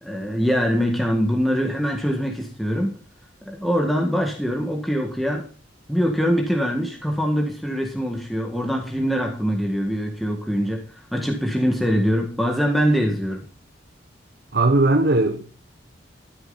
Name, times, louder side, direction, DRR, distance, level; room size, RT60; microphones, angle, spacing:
voice 1, 0.0-3.0 3.5-5.5 5.9-13.4, equal, ahead, 1.8 m, -23 dB
voice 2, 14.5-15.5, right 2 dB, 60° right, 1.1 m, -18 dB
13.0 x 10.5 x 4.1 m
head